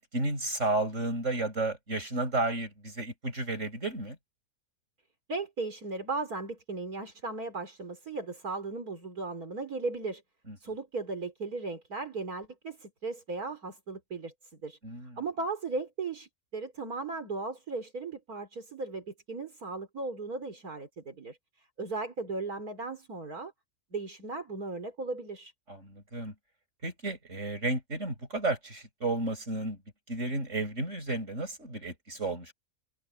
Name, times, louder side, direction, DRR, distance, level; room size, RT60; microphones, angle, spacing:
voice 1, 0.1-4.2 10.5-10.6 14.8-15.2 25.7-26.3 26.8-29.8 30.1-32.5, right 2 dB, 45° right, 8.0 m, -32 dB
voice 2, 5.3-10.2 10.6-14.3 14.6-14.8 15.2-21.4 21.8-23.5 23.9-25.5, right 3 dB, 65° right, 4.6 m, -36 dB
open air
omnidirectional pair, 1.7 m